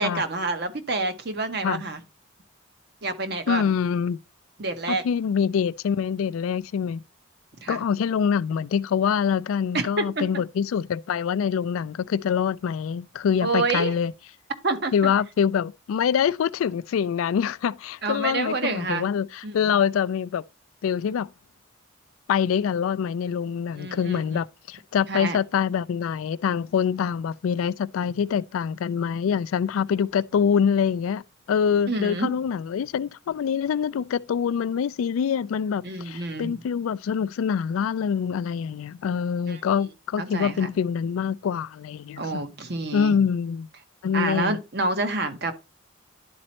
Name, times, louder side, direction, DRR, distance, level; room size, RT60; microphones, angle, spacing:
voice 1, 0.0-2.0 3.0-3.8 4.6-5.0 7.6-7.8 9.7-10.3 13.4-13.9 14.6-15.1 18.0-19.1 19.4-19.6 23.8-24.2 25.1-25.4 31.9-32.3 35.8-36.6 39.5-39.6 40.2-40.7 42.2-43.2 44.1-45.5, right 3 dB, 50° right, 0.9 m, -28 dB
voice 2, 3.5-4.2 4.9-7.0 7.7-14.1 14.9-20.4 20.8-21.3 22.3-31.2 31.5-42.5 42.9-43.7 44.0-44.6, left 7 dB, 85° left, 0.3 m, -25 dB
11.0 x 4.2 x 2.9 m
head